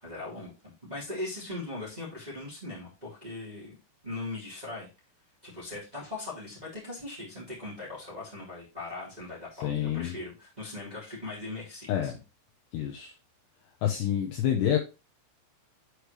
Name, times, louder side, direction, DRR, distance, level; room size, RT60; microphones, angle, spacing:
voice 1, 0.0-3.7 4.0-4.9 5.4-12.1, left 2 dB, 10° right, 2.1 m, -39 dB
voice 2, 9.6-10.2 11.9-12.2 12.7-13.1 13.8-14.8, left 10 dB, 80° left, 2.6 m, -28 dB
8.4 x 4.8 x 3.2 m
omnidirectional pair, 5.9 m